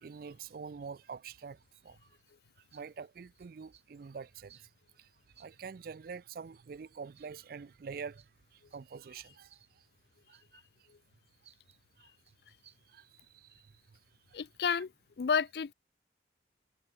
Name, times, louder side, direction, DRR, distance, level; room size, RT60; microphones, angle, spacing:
voice 1, 0.0-1.6 1.8-2.0 2.7-4.7 5.0-5.1 5.4-8.2 8.5-9.6 10.3-10.6 12.0-12.1 12.9-13.1 13.3-13.6, right 5 dB, 55° right, 0.4 m, -45 dB
sound 1, 1.6-1.9 2.2-2.3 2.7-2.9 3.3-4.0 4.5-4.7 5.3-5.7 6.5-7.3 8.2-8.3 8.7-8.8 9.3-9.7 10.3-11.8 12.2-12.8, right 10 dB, 35° right, 1.2 m, -64 dB
voice 2, 14.3-14.9 15.2-15.7, left 6 dB, 60° left, 0.4 m, -30 dB
head